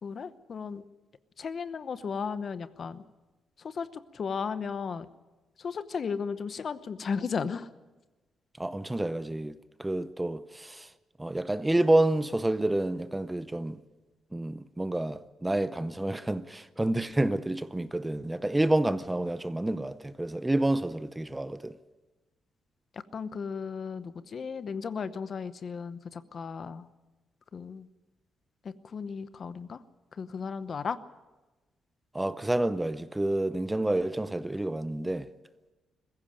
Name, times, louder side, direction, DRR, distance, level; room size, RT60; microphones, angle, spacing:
voice 1, 0.0-0.8 1.4-3.0 3.6-5.1 5.6-7.7 23.1-26.9 27.5-27.9 28.6-29.8 30.2-31.0, left 6 dB, 45° left, 0.9 m, -35 dB
voice 2, 8.6-10.9 11.2-13.8 14.3-21.7 32.1-35.3, right 1 dB, 10° right, 0.6 m, -29 dB
21.5 x 15.5 x 8.9 m
cardioid pair, 120°, 0 cm